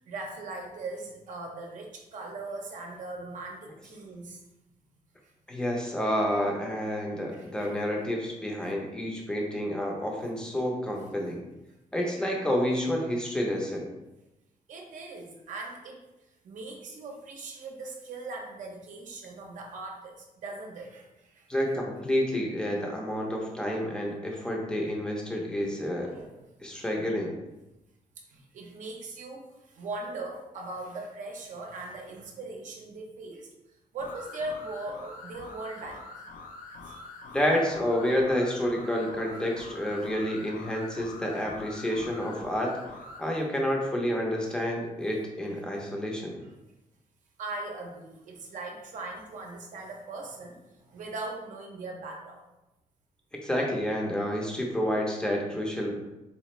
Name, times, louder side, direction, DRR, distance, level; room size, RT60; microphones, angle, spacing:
voice 1, 0.1-4.4 7.4-7.5 14.7-16.0 16.4-21.5 26.0-26.4 26.7-26.8 28.3-33.5 33.9-36.2 36.7-37.0 47.4-52.4, right 2 dB, 60° right, 1 dB, 0.6 m, -40 dB
voice 2, 5.5-11.4 11.9-13.9 21.5-26.1 26.6-27.3 37.3-42.8 43.2-46.4 53.4-55.9, equal, 5° left, -1 dB, 0.6 m, -29 dB
sound 1, 34.0-43.3, left 3 dB, 75° left, 0.5 m, -45 dB
4.1 x 2.4 x 3.0 m, 0.97 s
wide cardioid pair, 165°, 14 cm